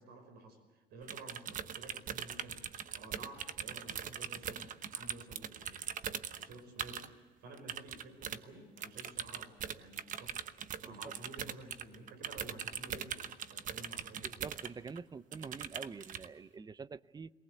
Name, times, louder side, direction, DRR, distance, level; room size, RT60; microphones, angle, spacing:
voice 1, 0.0-2.6 2.9-10.4 10.8-14.5, right 2 dB, 75° right, 5.3 m, -52 dB
sound 1, 1.0-7.1 7.5-8.4 8.8-15.0 15.3-16.3, right 8 dB, 50° right, 1.1 m, -41 dB
voice 2, 14.2-17.3, right 5 dB, 25° right, 0.6 m, -46 dB
22.0 x 19.5 x 8.1 m
cardioid pair, 110°, 17 cm